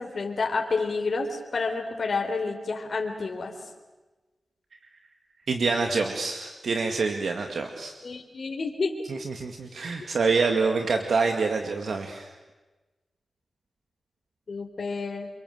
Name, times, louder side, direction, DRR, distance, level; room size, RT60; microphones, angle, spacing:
voice 1, 0.0-3.5 8.0-8.9 14.5-15.3, left 4 dB, 65° left, 3 dB, 3.6 m, -29 dB
voice 2, 5.5-7.9 9.1-12.3, right 4 dB, 75° right, 4 dB, 2.1 m, -26 dB
28.5 x 23.5 x 8.0 m, 1.2 s
cardioid pair, 55°, 0 cm